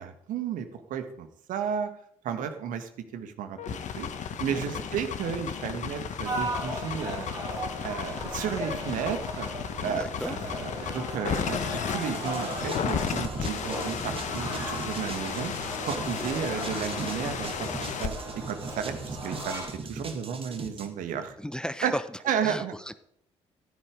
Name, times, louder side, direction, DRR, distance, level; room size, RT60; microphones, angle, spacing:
voice 1, 0.0-1.9 2.2-9.5 9.8-17.7 18.0-19.6 19.9-21.4 21.8-21.9 22.3-22.7, right 7 dB, 60° right, 8 dB, 1.8 m, -33 dB
sound 1, 3.6-18.1, left 7 dB, 50° left, 1.4 m, -34 dB
voice 2, 4.5-4.8 9.8-10.4 16.2-16.3 21.4-22.0 22.4-23.0, equal, 5° left, 14 dB, 0.9 m, -35 dB
sound 2, 6.2-19.7, right 1 dB, 75° right, 6.1 m, -37 dB
sound 3, 12.0-20.9, right 4 dB, 35° right, 2.3 m, -40 dB
15.0 x 12.5 x 5.1 m, 0.70 s
figure-of-eight pair, 40°, 15 cm